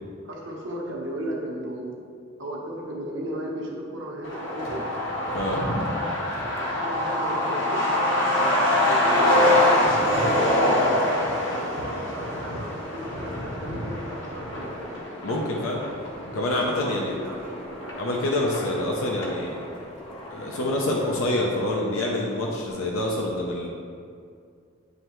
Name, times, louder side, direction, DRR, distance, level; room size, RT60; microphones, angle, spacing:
voice 1, 0.2-2.0 2.4-4.8 5.9-7.8 8.4-9.6 10.1-11.1 11.6-14.9 16.5-17.5, right 1 dB, 60° right, -2 dB, 1.0 m, -36 dB
Truck, 4.2-19.4 19.7-19.8 20.1-21.0 21.3-21.4 21.7-22.1, left 1 dB, 60° left, 1.0 m, -25 dB
sound 1, 12.3-21.4, equal, 25° left, 0.6 m, -43 dB
voice 2, 15.2-15.8 16.3-17.1 18.0-19.6 20.3-23.7, left 1 dB, 80° left, -2 dB, 0.7 m, -26 dB
9.1 x 3.3 x 3.1 m, 2.3 s
head